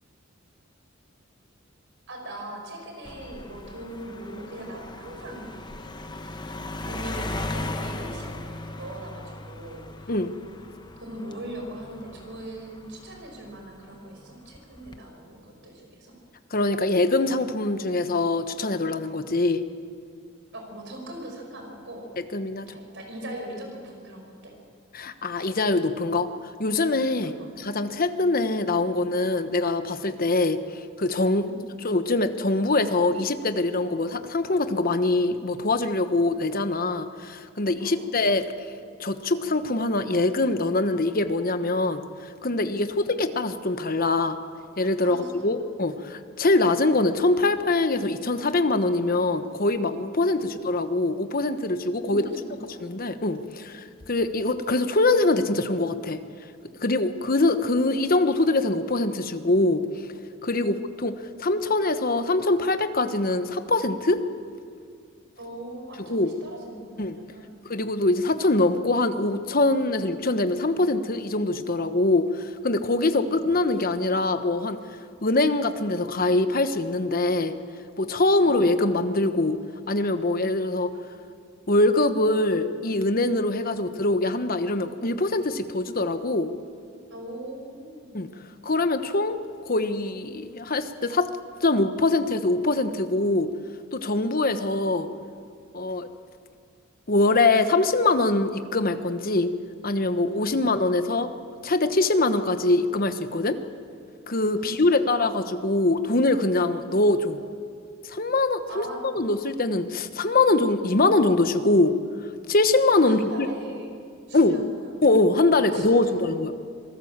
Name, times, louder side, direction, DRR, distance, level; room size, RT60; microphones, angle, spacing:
voice 1, 2.1-5.6 6.9-9.9 11.0-16.1 20.5-22.3 22.7-24.5 27.2-27.5 31.5-31.6 37.8-38.1 42.8-43.0 45.0-45.6 50.4-50.5 52.0-52.9 60.6-60.8 65.4-67.6 73.2-73.3 78.4-78.5 87.1-88.2 94.5-94.6 104.6-105.1 108.7-109.0 113.0-113.9 114.3-114.9 115.6-116.2, right 1 dB, 60° right, 2 dB, 5.7 m, -40 dB
sound 1, 3.0-13.8 14.5-15.0, left 2 dB, 20° left, 1.0 m, -37 dB
voice 2, 16.5-19.6 22.3-22.7 24.9-26.3 26.6-30.6 31.0-31.5 31.8-38.5 39.0-42.0 42.4-44.4 44.8-52.2 52.8-56.2 56.8-59.8 60.4-60.8 61.0-61.1 61.4-64.2 66.1-66.3 67.0-67.2 67.6-74.8 75.2-77.5 78.0-79.6 79.9-80.9 81.7-86.5 88.1-88.3 88.6-89.4 89.7-91.3 91.6-93.5 93.9-95.1 95.7-96.1 97.1-99.5 99.8-101.3 101.6-103.6 104.3-107.4 108.0-111.9 112.5-113.5 114.3-114.6 115.0-116.6, left 2 dB, 45° left, 9 dB, 1.1 m, -23 dB
26.0 x 18.5 x 7.4 m, 2.2 s
head